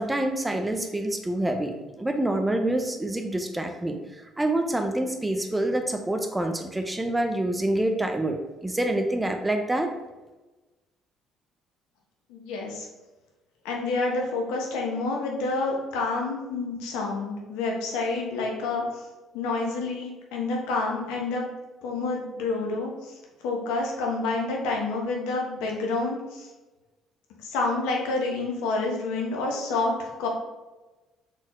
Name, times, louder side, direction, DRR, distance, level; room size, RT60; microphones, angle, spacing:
voice 1, 0.0-4.0 4.4-9.9, right 1 dB, 15° right, 5 dB, 0.7 m, -27 dB
voice 2, 12.3-12.9 13.6-19.0 19.3-21.5 21.8-23.1 23.4-26.5 27.4-30.3, left 3 dB, 75° left, 0 dB, 0.9 m, -28 dB
4.3 x 4.0 x 3.1 m, 1.1 s
hypercardioid pair, 55°, 0 cm